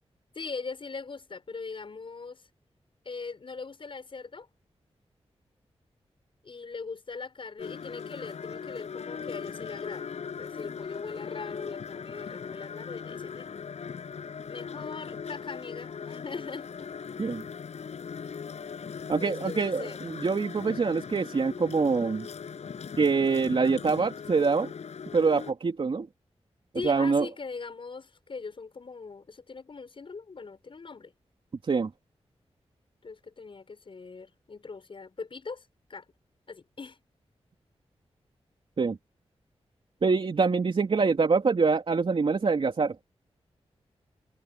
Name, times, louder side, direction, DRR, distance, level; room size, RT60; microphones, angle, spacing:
voice 1, 0.3-2.5 3.0-4.5 6.4-10.1 10.4-13.5 14.4-16.9 19.2-20.1 26.7-31.1 33.0-36.0 36.5-37.0, left 4 dB, 50° left, 6.9 m, -41 dB
sound 1, 7.6-25.5, left 6 dB, 85° left, 7.2 m, -39 dB
voice 2, 19.1-22.3 23.0-24.7 25.1-26.1 26.8-27.3 31.6-31.9 38.8-39.0 40.0-43.1, right 4 dB, 55° right, 3.5 m, -25 dB
wide cardioid pair, 100°, 11 cm